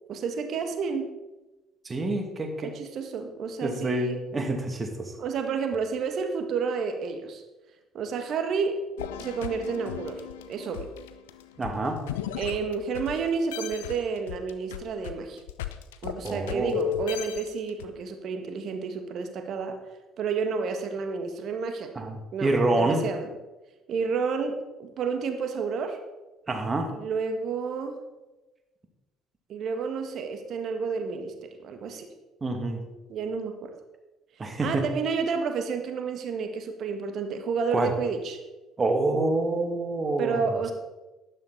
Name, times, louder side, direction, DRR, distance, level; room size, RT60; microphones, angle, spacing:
voice 1, 0.1-1.1 2.6-4.2 5.2-7.4 7.9-8.8 9.2-10.9 12.4-15.4 16.0-19.8 20.2-21.9 22.3-23.3 23.9-26.0 26.9-28.0 29.5-32.1 33.1-33.7 34.6-38.4 40.2-40.7, right 5 dB, 55° right, 6 dB, 1.6 m, -30 dB
voice 2, 1.8-2.7 3.6-5.1 11.6-12.0 16.2-16.8 21.9-23.0 26.5-26.9 32.4-32.8 34.4-34.8 37.7-37.9 38.8-40.7, right 2 dB, 30° right, 4 dB, 2.4 m, -27 dB
sound 1, 9.0-13.2 13.5-17.9, left 12 dB, 75° left, 0.7 m, -35 dB
12.0 x 11.5 x 4.1 m, 1.1 s
figure-of-eight pair, 55°, 0 cm